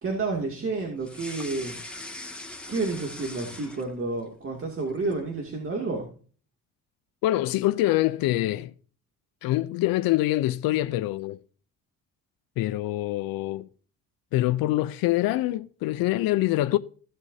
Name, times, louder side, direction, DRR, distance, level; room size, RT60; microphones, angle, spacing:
voice 1, 0.0-1.8 2.7-6.1, right 3 dB, 35° right, 2.5 m, -30 dB
sound 1, 1.0-4.2 4.6-5.3, left 2 dB, 5° left, 2.0 m, -41 dB
voice 2, 7.2-8.7 9.4-11.4 12.6-13.7 14.3-16.8, left 16 dB, 80° left, 0.6 m, -25 dB
15.5 x 7.9 x 2.8 m
cardioid pair, 85°, 35 cm